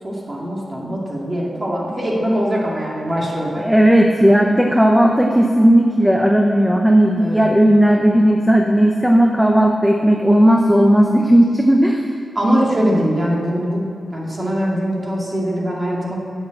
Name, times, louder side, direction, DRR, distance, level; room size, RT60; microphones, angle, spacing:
voice 1, 0.0-3.7 7.2-7.5 12.3-13.8 14.1-16.2, equal, 25° right, -3 dB, 2.3 m, -22 dB
voice 2, 3.6-12.0, right 1 dB, 5° right, 2 dB, 0.7 m, -14 dB
10.5 x 8.2 x 7.7 m, 2.4 s
wide cardioid pair, 150°, 0 cm